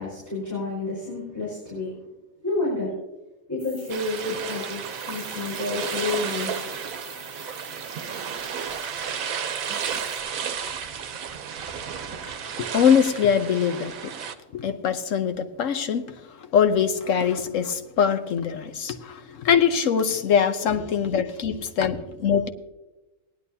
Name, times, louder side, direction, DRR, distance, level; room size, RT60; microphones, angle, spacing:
voice 1, 0.0-2.0 2.4-2.9 3.5-6.7, left 3 dB, 10° left, -9 dB, 4.7 m, -30 dB
sound 1, 3.6-10.2, right 1 dB, 15° right, 4.8 m, -46 dB
sound 2, 3.9-14.3, right 7 dB, 80° right, 1.2 m, -33 dB
voice 2, 12.6-14.1 14.5-16.1 16.4-22.5, left 7 dB, 70° left, 8 dB, 1.2 m, -23 dB
18.5 x 10.5 x 2.8 m, 1.1 s
omnidirectional pair, 1.4 m